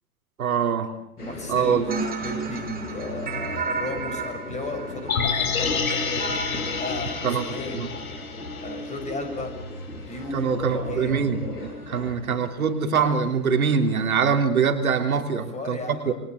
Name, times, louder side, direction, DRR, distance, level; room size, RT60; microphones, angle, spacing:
voice 1, 0.4-0.9 1.5-1.8 7.2-7.4 7.7-7.9 10.3-15.8 16.1-16.2, right 6 dB, 70° right, 6 dB, 3.4 m, -23 dB
sound 1, 1.2-14.1, left 1 dB, 85° left, 5.3 m, -37 dB
voice 2, 1.2-6.4 6.7-7.2 7.5-7.8 8.6-9.5 10.1-10.5 10.9-11.1 15.1-15.3 15.5-16.1, left 2 dB, 15° left, 6 dB, 6.6 m, -34 dB
sound 2, 1.9-8.0, right 5 dB, 20° right, 4.8 m, -34 dB
sound 3, 5.1-9.3 9.6-9.7, left 5 dB, 65° left, 4.6 m, -29 dB
29.0 x 23.0 x 8.3 m, 0.78 s
figure-of-eight pair, 100°, 45 cm